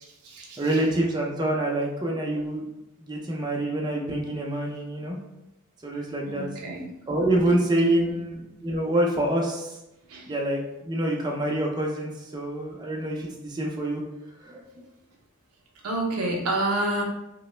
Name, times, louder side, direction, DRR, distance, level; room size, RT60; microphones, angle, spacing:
voice 1, 0.0-0.6 6.3-6.9 7.8-8.2 10.1-10.3 15.8-17.0, right 1 dB, 85° right, 0 dB, 0.6 m, -29 dB
voice 2, 0.6-2.7 3.0-5.2 5.8-6.5 7.1-9.7 10.3-14.0 14.4-14.6, right 1 dB, 20° right, -1 dB, 0.4 m, -26 dB
2.9 x 2.0 x 3.1 m, 0.91 s
head